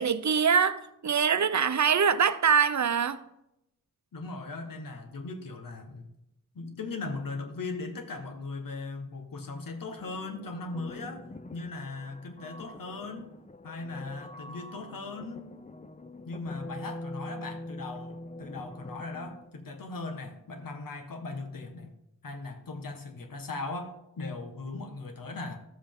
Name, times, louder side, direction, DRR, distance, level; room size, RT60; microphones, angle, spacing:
voice 1, 0.0-3.2, right 6 dB, 60° right, 0.7 m, -24 dB
voice 2, 4.1-6.1 6.5-11.2 11.5-13.3 13.6-15.5 16.2-21.9 22.2-25.6, left 3 dB, 85° left, 1.4 m, -38 dB
sound 1, 10.0-19.5, left 1 dB, 20° left, 0.6 m, -44 dB
12.5 x 7.6 x 3.7 m
cardioid pair, 60°, 33 cm